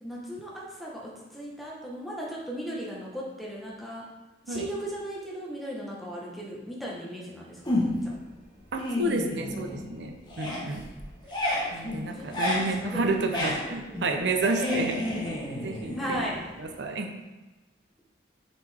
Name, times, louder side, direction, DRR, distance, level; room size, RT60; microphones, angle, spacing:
voice 1, 0.0-4.0 4.5-8.1 10.5-10.7 12.1-12.5 12.8-13.7 14.6-15.3 16.0-16.4, equal, ahead, -5 dB, 1.2 m, -36 dB
sound 1, 7.7-8.2 8.6-10.0 10.2-16.8, left 1 dB, 25° left, 1.2 m, -32 dB
voice 2, 8.7-10.8 11.7-15.0 15.3-16.3 16.6-17.1, right 2 dB, 75° right, 4 dB, 0.6 m, -30 dB
6.7 x 5.2 x 3.5 m, 1.2 s
head